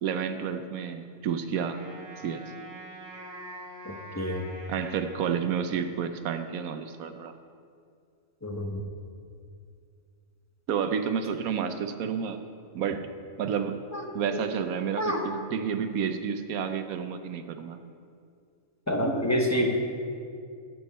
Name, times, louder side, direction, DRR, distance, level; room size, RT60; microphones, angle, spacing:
voice 1, 0.0-1.8 2.2-2.4 4.7-7.3 10.7-12.4 12.7-13.1 13.4-13.8 14.1-17.8, right 7 dB, 80° right, 8 dB, 1.1 m, -30 dB
Wind instrument woodwind instrument, 1.6-6.0, right 1 dB, 60° right, 2.9 m, -45 dB
voice 2, 3.8-4.4 8.4-8.8 13.9-14.1 14.3-14.5 15.0-15.2 18.9-19.8, equal, 15° left, 1 dB, 0.6 m, -28 dB
15.0 x 7.2 x 4.2 m, 2.3 s
omnidirectional pair, 1.5 m